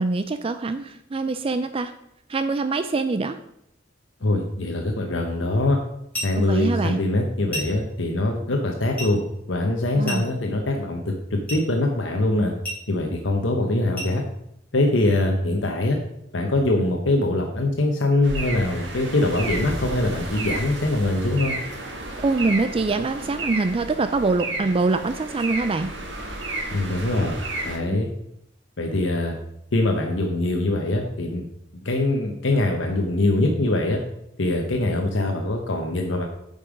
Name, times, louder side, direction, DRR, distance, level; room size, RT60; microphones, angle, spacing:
voice 1, 0.0-1.9 2.3-3.4 6.4-7.0 10.0-10.2 22.2-25.9 27.9-28.0, right 3 dB, 30° right, 10 dB, 0.4 m, -24 dB
voice 2, 4.2-5.8 6.2-9.2 9.5-12.5 12.9-14.2 14.7-16.0 16.3-21.6 26.7-28.1 28.8-29.4 29.7-31.4 31.8-34.0 34.4-36.3, left 2 dB, 80° left, 2 dB, 1.0 m, -23 dB
sound 1, 6.1-6.5 7.5-7.9 9.0-9.2 10.1-10.5 11.5-11.7 12.6-12.9 14.0-14.2, equal, 10° left, 3.5 m, -32 dB
sound 2, 18.2-27.8, right 2 dB, 70° right, 1.7 m, -32 dB
8.7 x 5.4 x 5.1 m, 0.78 s
head